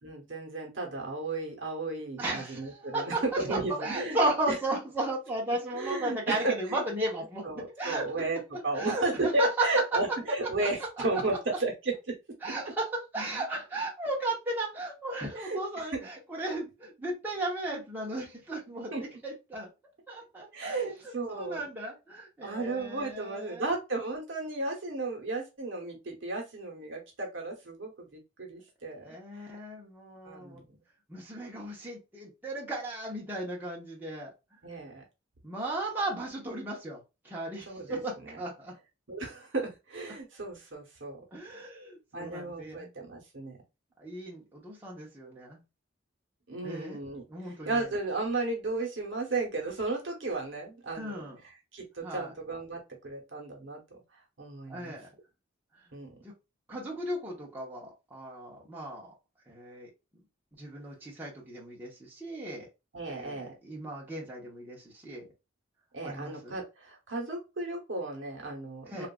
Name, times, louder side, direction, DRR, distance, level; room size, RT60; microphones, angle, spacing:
voice 1, 0.0-4.2 4.5-4.6 5.7-6.8 7.4-12.1 15.4-16.1 18.9-19.0 20.5-21.7 22.4-29.5 30.2-30.6 34.6-35.0 37.7-38.4 39.1-41.2 42.1-43.6 46.5-51.3 51.7-54.0 54.4-54.9 55.9-56.2 62.9-63.6 65.9-69.1, right 2 dB, 70° right, 0.9 m, -34 dB
voice 2, 2.2-3.2 3.5-8.0 8.7-9.7 12.4-19.7 20.1-20.8 21.3-23.7 28.9-30.6 31.1-34.3 35.4-38.7 41.3-42.9 44.0-45.6 46.6-47.0 47.3-47.9 50.9-51.4 52.0-52.3 54.7-55.1 56.2-56.3 56.7-59.1 59.5-59.9 60.6-62.7 63.1-65.3 66.0-66.6 68.9-69.1, right 1 dB, 10° right, 0.8 m, -35 dB
3.0 x 2.4 x 2.2 m
head